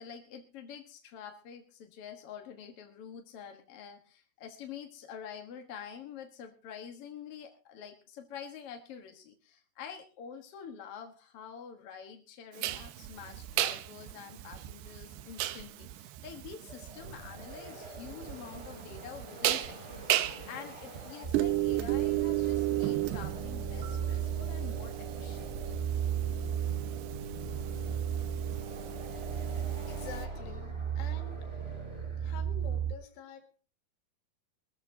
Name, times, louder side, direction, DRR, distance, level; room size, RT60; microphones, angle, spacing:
voice 1, 0.0-25.7, left 7 dB, 65° left, 4 dB, 1.4 m, -47 dB
sound 1, 12.6-30.3, right 15 dB, 90° right, 3.0 m, -34 dB
sound 2, 16.5-32.6, right 1 dB, 15° right, 5.0 m, -49 dB
sound 3, 21.2-32.9, right 8 dB, 65° right, 0.5 m, -36 dB
voice 2, 29.9-31.4 32.2-33.6, left 8 dB, 90° left, 6 dB, 4.1 m, -47 dB
22.0 x 14.0 x 2.7 m, 0.36 s
omnidirectional pair, 4.7 m